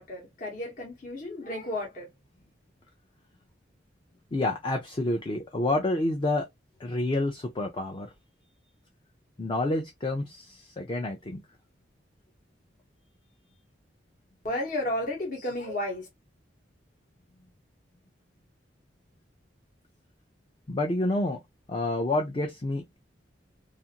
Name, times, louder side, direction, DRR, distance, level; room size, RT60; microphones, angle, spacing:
voice 1, 0.0-2.1 14.4-16.1, left 1 dB, 45° left, 0.9 m, -33 dB
voice 2, 4.3-6.5 6.8-8.1 9.4-11.4 20.7-21.4 21.7-23.0, left 2 dB, 25° left, 0.4 m, -28 dB
2.5 x 2.5 x 2.7 m
head